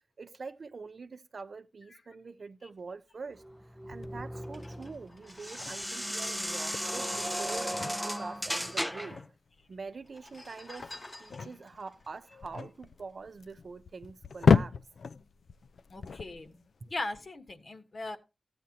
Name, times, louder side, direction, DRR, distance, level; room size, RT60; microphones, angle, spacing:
voice 1, 0.2-3.4 3.9-9.2 9.7-14.8, right 4 dB, 60° right, 0.7 m, -45 dB
sound 1, 3.4-9.2, equal, ahead, 0.5 m, -36 dB
sound 2, 3.7-3.8 4.4-8.1 8.3-8.4 8.6-9.3 10.0-13.4 13.9-14.1, left 1 dB, 30° left, 1.0 m, -53 dB
sound 3, 3.9-17.0, left 5 dB, 80° left, 0.4 m, -33 dB
voice 2, 15.9-18.2, left 2 dB, 45° left, 1.3 m, -39 dB
15.0 x 8.0 x 2.9 m
wide cardioid pair, 110°, 0 cm